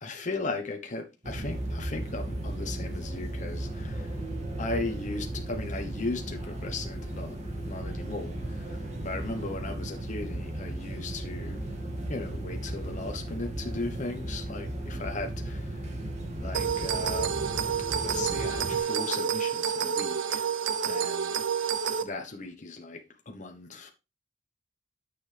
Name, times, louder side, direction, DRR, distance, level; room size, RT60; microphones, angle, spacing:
voice 1, 0.0-4.2 4.6-11.6 12.1-15.9 16.4-17.5 18.0-20.5 20.8-21.4 22.0-23.9, left 2 dB, 45° left, 1.1 m, -37 dB
sound 1, 1.2-18.8, right 1 dB, 40° right, 2.2 m, -35 dB
sound 2, 16.5-22.0, right 7 dB, 85° right, 0.8 m, -29 dB
9.5 x 6.9 x 3.4 m
head